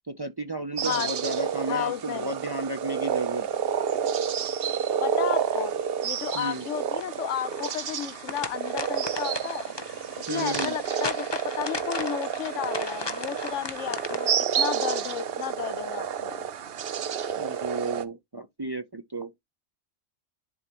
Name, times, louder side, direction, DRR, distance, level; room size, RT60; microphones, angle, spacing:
voice 1, 0.1-3.6 6.3-6.6 10.3-10.8 17.4-19.3, right 2 dB, 30° right, 0.4 m, -33 dB
sound 1, 0.8-18.1, right 8 dB, 60° right, 0.9 m, -30 dB
voice 2, 1.7-2.3 5.0-5.7 6.0-9.7 10.3-16.5, left 11 dB, 90° left, 1.0 m, -33 dB
sound 2, 6.9-14.3, left 3 dB, 25° left, 0.8 m, -37 dB
11.0 x 3.9 x 3.0 m
omnidirectional pair, 1.2 m